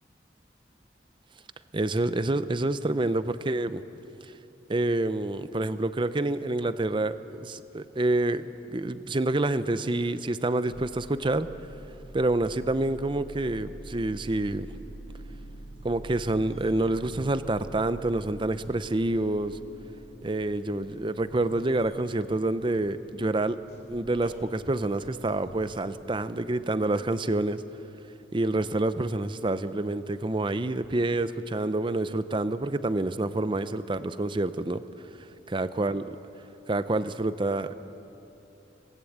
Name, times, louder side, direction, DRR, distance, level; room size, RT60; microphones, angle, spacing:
voice 1, 1.7-3.8 4.7-11.5 12.1-14.7 15.8-19.6 20.2-23.6 23.9-27.6 28.3-34.8 35.5-36.2 36.7-37.7, right 2 dB, 25° right, 13 dB, 0.6 m, -27 dB
sound 1, 10.7-26.0, right 1 dB, 60° left, 3.0 m, -46 dB
22.5 x 18.5 x 8.6 m, 3.0 s
head